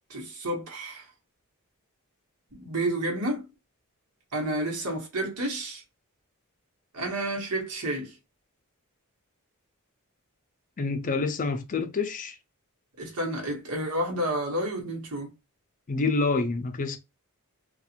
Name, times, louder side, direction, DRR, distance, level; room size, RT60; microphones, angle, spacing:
voice 1, 0.1-1.1 2.5-3.5 4.3-5.8 6.9-8.1 13.0-15.3, right 1 dB, 80° right, 1.1 m, -30 dB
voice 2, 10.8-12.4 15.9-17.0, left 3 dB, 35° left, 0.4 m, -27 dB
2.5 x 2.3 x 2.8 m
head